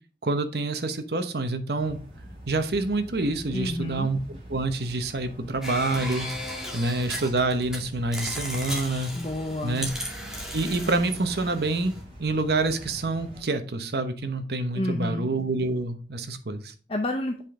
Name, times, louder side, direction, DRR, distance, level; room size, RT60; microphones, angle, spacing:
voice 1, 0.2-2.0 2.5-6.3 6.7-9.1 9.6-9.9 10.5-16.7, right 2 dB, 65° right, 8 dB, 1.0 m, -27 dB
sound 1, 1.8-13.4, equal, 30° right, 3.4 m, -44 dB
voice 2, 3.5-4.1 9.1-9.8 14.7-15.3 16.9-17.4, left 1 dB, 35° left, 4 dB, 0.6 m, -29 dB
sound 2, 5.6-7.8 8.1-12.0, equal, 5° right, 1.9 m, -36 dB
8.2 x 5.1 x 3.7 m, 0.38 s
head